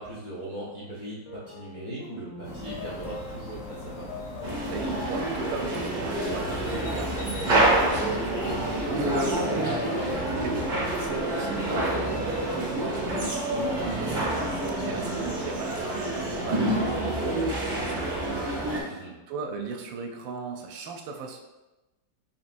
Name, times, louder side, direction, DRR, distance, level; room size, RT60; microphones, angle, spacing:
voice 1, 0.0-4.2 14.6-15.1 18.8-19.2, right 1 dB, 50° left, -7 dB, 0.5 m, -39 dB
sound 1, 1.2-17.3, left 3 dB, 85° left, 1.3 m, -41 dB
sound 2, 2.4-9.3, left 2 dB, 70° left, 1.4 m, -40 dB
sound 3, 4.4-18.8, right 1 dB, 55° right, 0.5 m, -27 dB
voice 2, 4.7-10.7 11.0-14.5 14.8-21.4, right 4 dB, 85° right, 3 dB, 1.3 m, -38 dB
5.4 x 3.0 x 2.5 m, 1.1 s
omnidirectional pair, 2.0 m